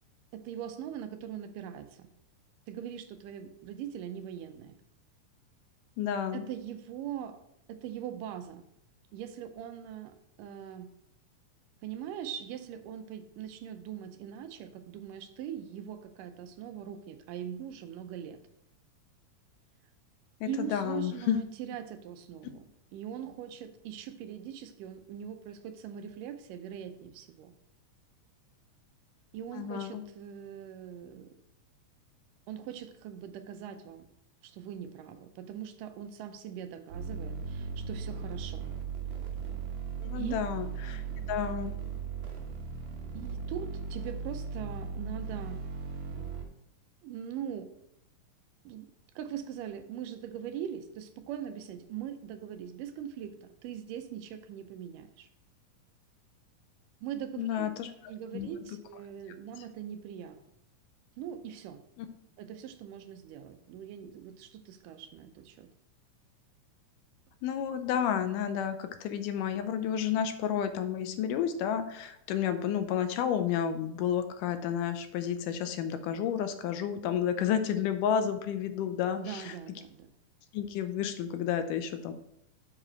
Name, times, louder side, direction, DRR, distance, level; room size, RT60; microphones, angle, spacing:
voice 1, 0.3-2.1 2.7-4.8 6.3-7.4 7.7-8.6 9.1-10.1 10.4-10.9 11.8-18.4 20.4-22.7 22.9-27.5 29.3-31.3 32.5-34.1 34.4-38.7 40.1-40.4 41.1-41.2 43.1-45.6 47.0-47.7 48.7-48.9 49.2-55.3 57.0-57.7 58.1-60.4 61.2-61.8 62.4-65.7 79.1-80.2, right 9 dB, 90° right, 8 dB, 2.3 m, -41 dB
voice 2, 6.0-6.4 20.4-21.4 29.5-30.0 40.0-41.0 41.3-41.8 57.4-57.9 58.3-58.5 62.0-62.1 67.4-79.5 80.5-82.1, left 9 dB, 85° left, 9 dB, 2.2 m, -31 dB
sound 1, 36.9-46.4, right 5 dB, 75° right, 2.5 m, -37 dB
7.4 x 4.9 x 4.3 m, 0.75 s
omnidirectional pair, 3.7 m